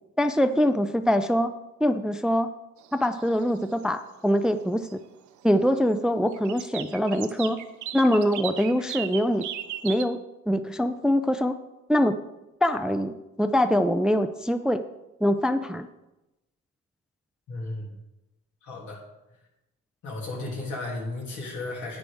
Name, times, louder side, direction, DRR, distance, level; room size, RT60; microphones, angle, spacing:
voice 1, 0.2-1.5 1.8-2.5 2.9-5.0 5.4-7.6 7.9-9.4 9.8-10.2 10.5-11.6 11.9-12.2 12.6-14.9 15.2-15.9, equal, ahead, 10 dB, 0.4 m, -23 dB
sound 1, 2.8-4.0 4.3-4.6 4.8-5.7 6.1-10.0, right 11 dB, 75° right, 0.7 m, -37 dB
voice 2, 17.5-17.9 18.6-19.0 20.0-22.0, left 2 dB, 75° left, -2 dB, 2.9 m, -34 dB
10.0 x 8.9 x 3.5 m, 0.97 s
cardioid pair, 90°, 30 cm